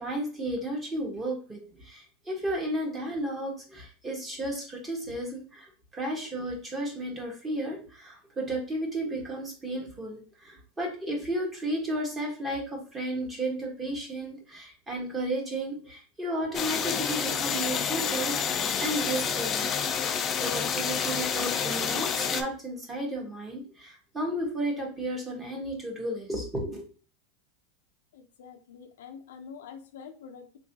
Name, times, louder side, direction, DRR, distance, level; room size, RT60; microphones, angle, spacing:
voice 1, 0.0-19.8 20.4-26.8, right 1 dB, 15° right, 0 dB, 1.1 m, -33 dB
sound 1, 16.5-22.4, left 7 dB, 25° left, 0.4 m, -29 dB
voice 2, 28.1-30.6, left 6 dB, 90° left, 7 dB, 0.5 m, -46 dB
3.7 x 2.9 x 2.7 m, 0.38 s
supercardioid pair, 145°, 0 cm